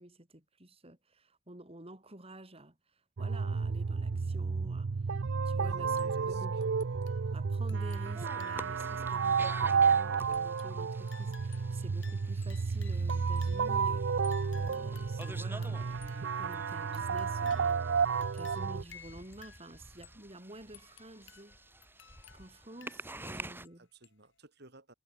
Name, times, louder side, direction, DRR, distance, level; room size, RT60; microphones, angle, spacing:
voice 1, 0.0-6.7 7.3-17.7 18.3-21.6 22.3-23.9, right 1 dB, 30° right, 4.1 m, -50 dB
sound 1, 3.2-18.8, right 5 dB, 85° right, 0.6 m, -31 dB
voice 2, 5.7-6.6 22.8-22.9 23.3-23.5 23.8-24.9, right 2 dB, 60° right, 4.8 m, -55 dB
sound 2, 5.9-6.3 6.6-9.2 9.4-9.5 10.3-13.8 14.2-17.9 18.2-20.2 20.7-23.7 24.0-24.1, left 8 dB, 85° left, 3.9 m, -57 dB
sound 3, 8.0-23.7, right 2 dB, 10° right, 5.1 m, -50 dB
head